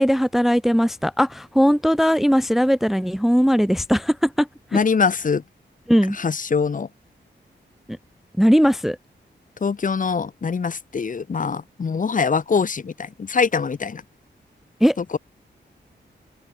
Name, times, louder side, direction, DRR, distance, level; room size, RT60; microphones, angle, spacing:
voice 1, 0.0-4.8 5.9-6.2 7.9-8.0 8.4-9.0 14.8-15.0, equal, ahead, 0.5 m, -19 dB
voice 2, 4.7-5.4 6.2-6.9 9.6-14.0, left 5 dB, 45° left, 1.1 m, -23 dB
wide cardioid pair, 110°, 19 cm